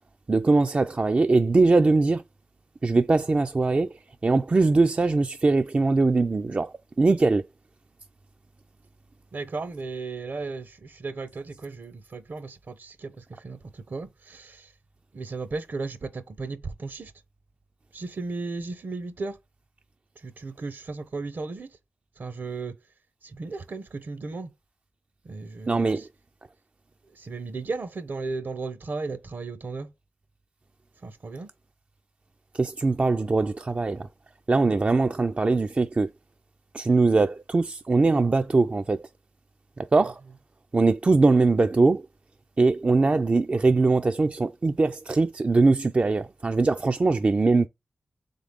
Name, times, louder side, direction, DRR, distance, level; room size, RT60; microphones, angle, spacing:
voice 1, 0.3-2.2 2.8-3.9 4.2-7.4 25.7-26.1 32.5-34.1 34.5-36.1 36.7-39.0 39.9-40.2 40.7-42.0 42.6-47.7, right 3 dB, 35° right, 0.3 m, -21 dB
voice 2, 9.3-14.7 15.1-17.1 17.9-19.4 20.2-21.7 22.2-22.7 23.2-24.5 25.2-26.1 27.1-29.9 31.0-31.5 40.0-40.1, right 3 dB, 60° right, 0.7 m, -35 dB
3.7 x 3.6 x 3.5 m
cardioid pair, 55°, 4 cm